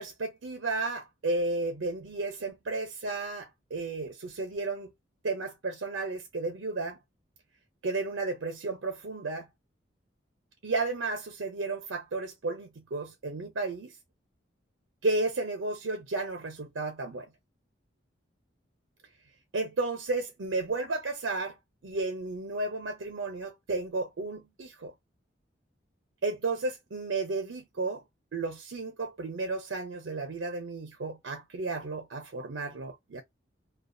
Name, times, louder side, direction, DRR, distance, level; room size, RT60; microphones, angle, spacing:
voice 1, 0.0-4.9 5.2-7.0 7.8-9.5 10.6-14.0 15.0-17.3 19.5-21.6 21.8-24.9 26.2-28.0 28.3-33.2, right 3 dB, 85° right, 0.6 m, -33 dB
2.5 x 2.3 x 2.2 m
head